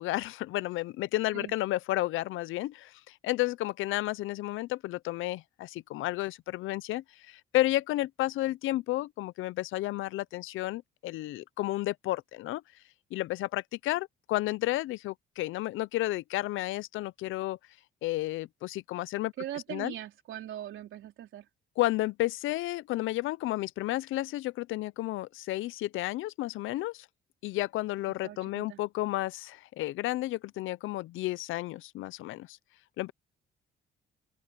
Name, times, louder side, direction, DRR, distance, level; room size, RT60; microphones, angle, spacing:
voice 1, 0.0-12.6 13.1-17.6 18.0-19.3 19.7-19.9 21.8-27.1 27.4-32.6 33.0-33.1, left 16 dB, 85° left, 0.6 m, -32 dB
voice 2, 19.4-21.5 28.2-28.8, right 12 dB, 80° right, 3.5 m, -40 dB
open air
cardioid pair, 90°, 20 cm